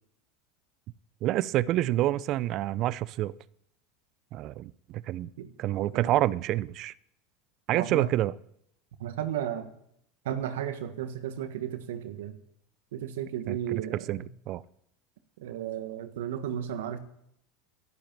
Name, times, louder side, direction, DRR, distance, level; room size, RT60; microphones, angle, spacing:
voice 1, 1.2-3.3 4.3-5.3 5.6-6.9 7.7-8.3 13.5-13.8 14.1-14.6, right 14 dB, 50° right, 0.6 m, -28 dB
voice 2, 7.7-8.1 9.0-9.7 10.2-12.4 12.9-14.3 15.4-17.0, right 10 dB, 75° right, 1.5 m, -34 dB
12.0 x 11.5 x 7.5 m
hypercardioid pair, 85°, 0 cm